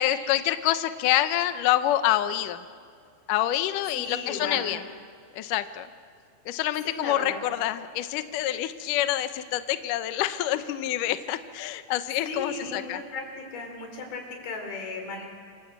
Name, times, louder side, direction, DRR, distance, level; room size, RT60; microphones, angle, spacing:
voice 1, 0.0-2.7 3.3-4.8 5.4-5.9 6.5-13.0, left 13 dB, 85° left, 10 dB, 1.8 m, -27 dB
voice 2, 3.9-4.7 6.8-7.4 12.2-15.3, left 3 dB, 60° left, 3 dB, 5.6 m, -35 dB
28.0 x 24.0 x 8.1 m, 2.2 s
omnidirectional pair, 5.1 m